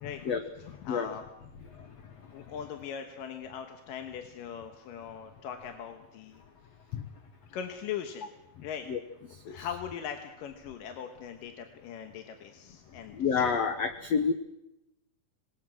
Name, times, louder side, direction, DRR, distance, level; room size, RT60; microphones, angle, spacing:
voice 1, 0.6-1.2 2.3-6.4 7.5-8.3 8.6-8.9 9.4-13.5, left 8 dB, 65° left, 6 dB, 2.7 m, -40 dB
voice 2, 13.1-14.3, left 6 dB, 85° left, 8 dB, 1.4 m, -28 dB
26.5 x 20.0 x 6.2 m, 0.91 s
omnidirectional pair, 4.5 m